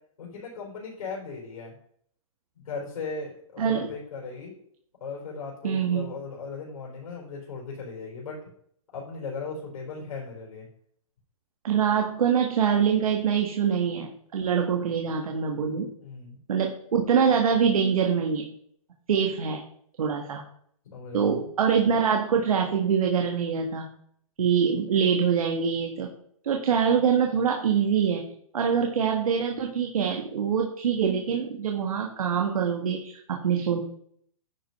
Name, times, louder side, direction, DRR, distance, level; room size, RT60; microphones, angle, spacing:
voice 1, 0.2-1.8 2.5-4.5 5.0-8.4 8.9-10.7 16.0-16.4 20.9-21.5, left 4 dB, 70° left, -2 dB, 4.8 m, -37 dB
voice 2, 5.6-6.0 11.6-15.9 16.5-18.5 19.1-19.6 20.0-20.4 21.1-23.9 24.4-26.1 26.4-33.8, right 7 dB, 75° right, 2 dB, 1.7 m, -24 dB
10.5 x 5.3 x 5.5 m, 0.66 s
hypercardioid pair, 145°, 18 cm